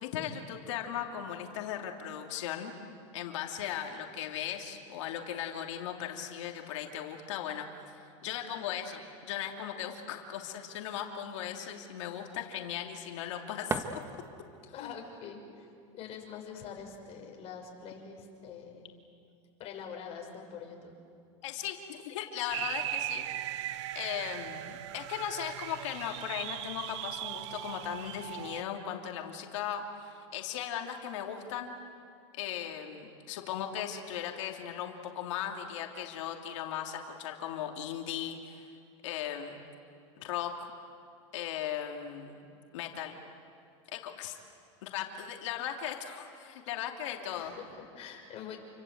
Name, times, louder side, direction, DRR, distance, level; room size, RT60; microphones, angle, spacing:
voice 1, 0.0-2.7 3.1-7.7 8.2-14.0 14.8-14.9 21.4-23.7 23.9-31.7 32.4-38.7 39.0-39.6 40.2-40.7 41.3-42.5 42.7-43.2 43.9-44.4 44.8-47.5, left 9 dB, 75° left, 2 dB, 2.9 m, -38 dB
sound 1, 13.2-14.7, right 3 dB, 15° right, 1.6 m, -38 dB
voice 2, 14.7-15.7 15.9-18.9 19.6-20.9 47.2-48.6, left 7 dB, 40° left, 2 dB, 6.1 m, -45 dB
sound 2, 22.5-28.6, right 14 dB, 65° right, 0.9 m, -38 dB
29.0 x 25.0 x 8.1 m, 2.4 s
supercardioid pair, 130°, 16 cm